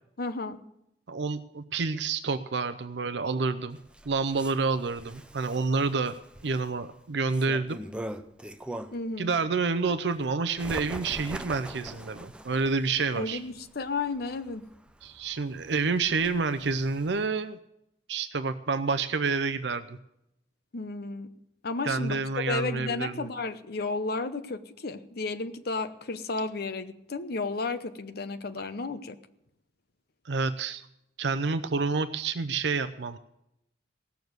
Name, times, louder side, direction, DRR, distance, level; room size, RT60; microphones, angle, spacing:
voice 1, 0.2-0.6 8.9-9.3 13.2-14.6 20.7-21.3 21.6-22.2 22.5-29.2, left 3 dB, 60° left, 10 dB, 0.9 m, -33 dB
voice 2, 1.1-3.8 4.1-6.1 6.4-7.8 9.2-13.4 15.0-17.6 18.1-20.0 21.8-23.3 30.3-30.9 31.2-33.2, right 4 dB, 70° right, 11 dB, 0.6 m, -28 dB
Bird, 3.7-9.1 9.6-17.3, right 1 dB, 5° right, 0.6 m, -43 dB
17.0 x 7.1 x 8.0 m, 0.82 s
head